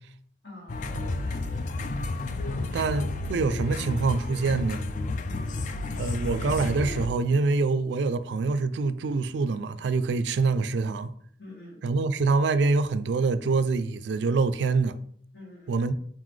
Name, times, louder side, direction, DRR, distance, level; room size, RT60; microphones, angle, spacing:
voice 1, 0.4-2.1 2.4-2.9 5.2-5.8 11.4-11.8 15.3-15.8, left 1 dB, 75° left, 1.7 m, -47 dB
sound 1, 0.7-7.1, left 2 dB, 45° left, 0.3 m, -31 dB
voice 2, 2.7-4.8 6.0-11.1 11.8-15.0 15.7-15.9, right 4 dB, 70° right, 0.3 m, -25 dB
4.0 x 3.9 x 3.2 m
head